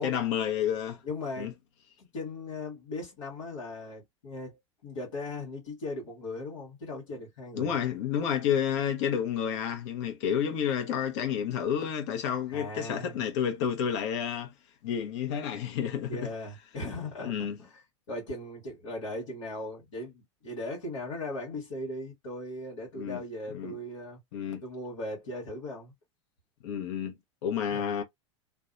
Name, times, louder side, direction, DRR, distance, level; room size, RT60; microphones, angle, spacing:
voice 1, 0.0-1.0 1.4-1.5 7.5-14.5 14.8-16.3 17.2-17.6 22.9-23.2 23.5-23.8 24.3-24.6 26.6-27.1 27.4-28.0, left 8 dB, 65° left, 0.9 m, -30 dB
voice 2, 1.0-1.5 2.0-7.7 12.5-13.2 16.1-17.3 17.6-17.8 18.1-24.2 24.6-25.9 27.7-27.9, left 2 dB, 80° left, 1.3 m, -38 dB
2.6 x 2.2 x 2.5 m
hypercardioid pair, 95°, 16 cm